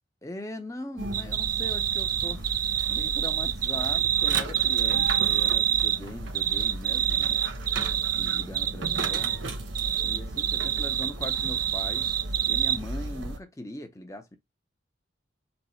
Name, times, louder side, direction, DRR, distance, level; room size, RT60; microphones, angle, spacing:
voice 1, 0.2-7.4 7.9-9.4 10.0-12.1 12.4-14.4, left 1 dB, 15° left, 0.7 m, -40 dB
sound 1, 1.0-13.4, right 2 dB, 75° right, 1.0 m, -36 dB
sound 2, 1.1-6.0 6.3-9.4 9.7-12.8, right 10 dB, 45° right, 0.4 m, -26 dB
5.3 x 2.3 x 4.3 m
head